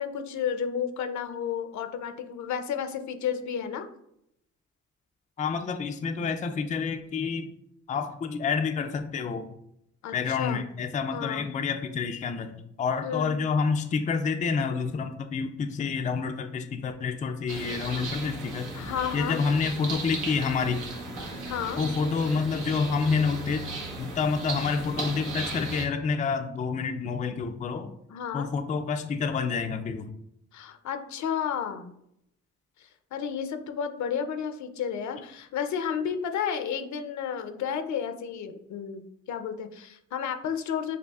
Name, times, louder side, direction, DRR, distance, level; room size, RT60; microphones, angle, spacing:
voice 1, 0.0-3.9 10.0-10.6 11.1-11.5 13.0-13.4 18.7-19.4 21.4-21.8 28.1-28.5 30.5-31.9 32.8-41.0, left 7 dB, 70° left, 8 dB, 0.6 m, -32 dB
voice 2, 5.4-7.5 7.9-9.5 10.1-12.5 12.8-18.8 19.1-20.8 21.8-23.7 24.0-27.9 28.3-30.1, left 5 dB, 25° left, 6 dB, 0.3 m, -28 dB
sound 1, 17.5-25.9, right 2 dB, 85° right, 1.2 m, -36 dB
6.7 x 2.5 x 2.4 m, 0.77 s
cardioid pair, 90°, 30 cm